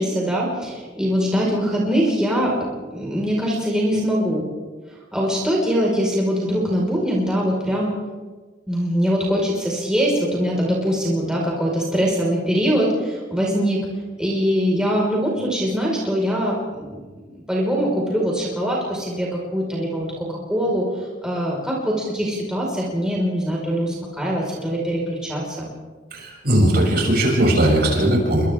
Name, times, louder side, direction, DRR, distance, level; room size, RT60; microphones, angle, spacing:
voice 1, 0.0-2.6 2.9-4.5 5.1-7.9 8.7-13.8 14.2-25.7, equal, 5° right, -4 dB, 5.3 m, -22 dB
voice 2, 26.1-28.5, right 1 dB, 55° right, -2 dB, 7.5 m, -18 dB
29.5 x 25.5 x 3.8 m, 1.3 s
head